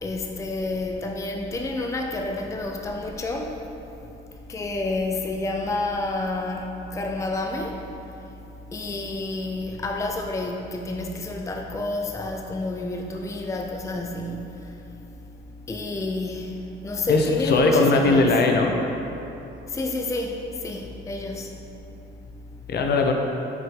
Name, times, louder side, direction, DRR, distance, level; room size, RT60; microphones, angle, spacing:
voice 1, 0.0-3.7 4.4-7.8 8.2-8.3 8.7-14.9 15.7-18.3 19.7-21.5, left 2 dB, 15° left, 1 dB, 0.5 m, -29 dB
voice 2, 17.1-18.7 22.7-23.1, left 3 dB, 55° left, 2 dB, 0.7 m, -19 dB
5.9 x 4.6 x 3.8 m, 2.9 s
cardioid pair, 90°, 20 cm